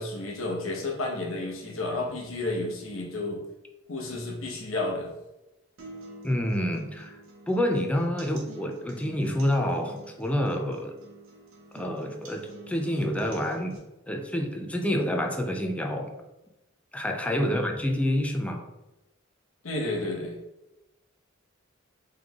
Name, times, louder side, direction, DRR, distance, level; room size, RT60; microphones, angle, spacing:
voice 1, 0.0-3.4 3.9-5.1 17.4-17.7 19.6-20.3, left 2 dB, 90° left, 1 dB, 0.9 m, -31 dB
sound 1, 5.8-13.8, right 1 dB, 90° right, 1.0 m, -47 dB
voice 2, 6.2-7.2 7.5-11.0 11.7-16.2 16.9-18.7, equal, 5° left, 3 dB, 0.4 m, -28 dB
3.7 x 3.3 x 3.5 m, 0.97 s
head